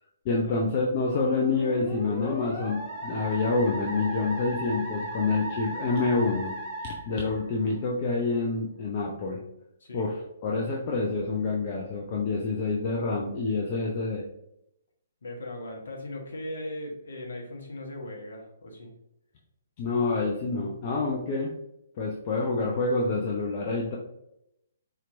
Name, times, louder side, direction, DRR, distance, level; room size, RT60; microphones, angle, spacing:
voice 1, 0.2-6.5 6.8-9.4 9.9-10.2 10.4-14.2 19.8-21.5 22.0-24.0, left 3 dB, 40° left, -2 dB, 0.5 m, -27 dB
Musical instrument, 1.0-7.9, right 1 dB, 15° left, 1.1 m, -36 dB
voice 2, 15.2-18.9, left 1 dB, 65° left, 0 dB, 1.1 m, -38 dB
4.3 x 2.9 x 2.5 m, 0.82 s
figure-of-eight pair, 130°, 0 cm